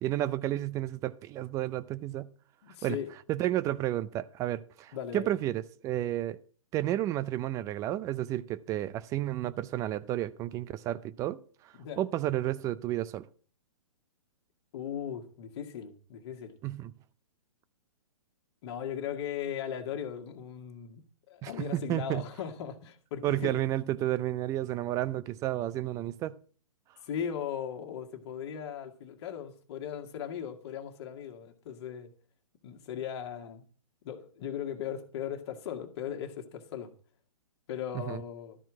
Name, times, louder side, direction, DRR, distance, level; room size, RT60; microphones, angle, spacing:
voice 1, 0.0-2.3 2.8-3.0 3.3-6.4 6.7-11.4 12.0-13.3 16.6-16.9 21.4-22.2 23.2-26.4 38.1-38.2, right 13 dB, 20° right, 0.4 m, -31 dB
voice 2, 2.6-3.1 4.9-5.3 11.8-12.0 14.7-16.5 18.6-23.6 27.0-32.1 32.6-33.6 34.0-36.9 37.7-38.6, left 9 dB, 50° left, 1.7 m, -38 dB
12.5 x 4.5 x 8.5 m
hypercardioid pair, 125°, 18 cm